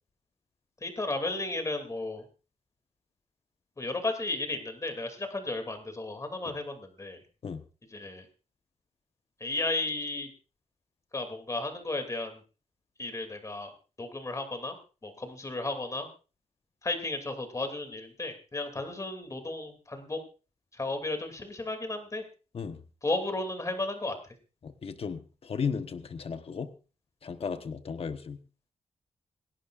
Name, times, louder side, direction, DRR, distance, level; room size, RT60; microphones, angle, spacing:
voice 1, 0.8-2.2 3.8-7.2 7.9-8.2 9.4-10.3 11.1-12.4 13.0-13.7 14.0-14.8 15.0-16.1 16.8-20.2 20.7-22.2 23.0-24.2, left 2 dB, 25° left, 6 dB, 2.6 m, -34 dB
voice 2, 24.6-26.7 27.2-28.4, left 6 dB, 50° left, 8 dB, 1.1 m, -35 dB
27.5 x 11.5 x 2.5 m, 0.34 s
wide cardioid pair, 145°, 13 cm